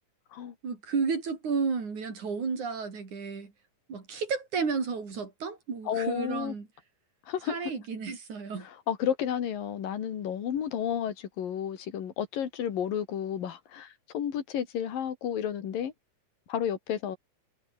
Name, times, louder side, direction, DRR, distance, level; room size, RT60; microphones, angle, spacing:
voice 1, 0.6-3.5 3.9-6.7 7.5-8.7, right 5 dB, 60° right, 5.9 m, -32 dB
voice 2, 5.9-6.5 7.3-7.6 8.6-15.9 16.5-17.2, left 9 dB, 85° left, 4.1 m, -32 dB
omnidirectional pair, 3.9 m